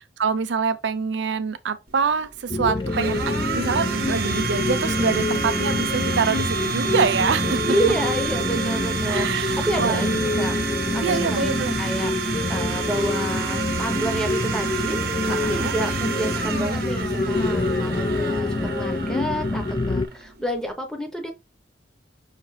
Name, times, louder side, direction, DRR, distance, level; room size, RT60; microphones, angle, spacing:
voice 1, 0.0-3.2 3.5-7.8 9.1-10.2 11.0-11.8 15.2-15.8, right 5 dB, 80° right, 0.5 m, -25 dB
Domestic sounds home sounds, 1.9-20.7, right 6 dB, 55° right, 0.9 m, -30 dB
sound 1, 2.5-20.1, left 2 dB, 25° left, 0.3 m, -26 dB
voice 2, 7.6-10.5 10.9-12.1 12.5-21.3, right 1 dB, 5° left, 0.8 m, -29 dB
5.7 x 2.9 x 3.1 m
head